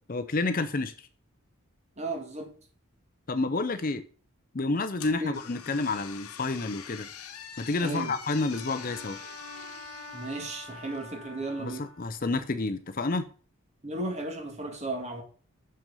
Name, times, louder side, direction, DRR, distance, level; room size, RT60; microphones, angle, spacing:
voice 1, 0.1-1.1 3.3-4.0 4.5-7.1 7.6-9.2 11.6-13.2, left 3 dB, 40° left, 0.6 m, -29 dB
voice 2, 2.0-2.5 5.2-5.4 7.8-8.1 10.1-11.9 13.8-15.2, right 2 dB, 30° right, 1.8 m, -34 dB
sound 1, 5.0-11.1, left 8 dB, 90° left, 1.0 m, -45 dB
Bowed string instrument, 8.5-12.2, left 2 dB, 70° right, 3.2 m, -45 dB
7.0 x 5.9 x 5.3 m
head